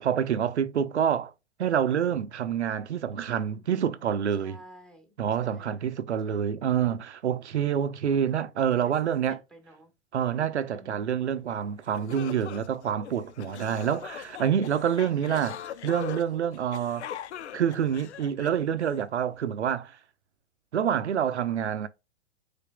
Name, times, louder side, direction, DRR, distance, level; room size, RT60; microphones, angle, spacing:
voice 1, 0.0-1.3 1.6-4.6 5.2-9.4 10.1-17.0 17.5-19.9 20.7-21.9, right 8 dB, 85° right, 0.7 m, -27 dB
voice 2, 3.1-3.7 4.4-5.1 5.4-5.8 6.2-6.4 8.7-8.9 9.3-9.9 10.7-11.2 14.7-15.3, equal, ahead, 1.4 m, -52 dB
sound 1, 11.5-11.6 11.9-19.0, left 9 dB, 80° left, 0.5 m, -41 dB
5.1 x 4.1 x 2.2 m
hypercardioid pair, 110°, 33 cm